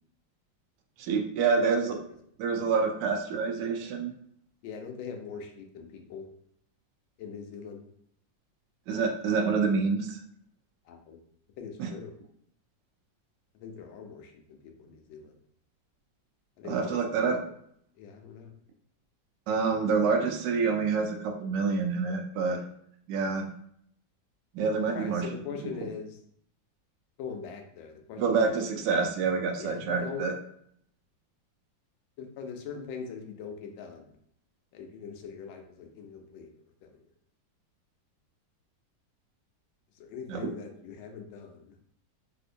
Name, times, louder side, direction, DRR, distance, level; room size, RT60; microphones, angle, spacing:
voice 1, 1.0-2.0 2.4-4.1 8.9-10.2 11.8-11.9 16.6-17.4 19.5-22.6 23.1-23.5 24.5-25.3 28.2-30.3 40.3-40.5, right 5 dB, 75° right, 4 dB, 1.1 m, -27 dB
voice 2, 4.6-6.3 7.2-7.9 10.8-11.2 11.6-12.1 13.5-15.4 16.6-17.0 17.2-17.3 18.0-18.5 24.9-26.2 27.2-28.6 29.6-30.3 32.2-34.1 34.7-36.5 36.8-37.0 39.9-41.8, left 6 dB, 80° left, 4 dB, 1.3 m, -42 dB
3.5 x 2.7 x 2.5 m, 0.68 s
omnidirectional pair, 2.1 m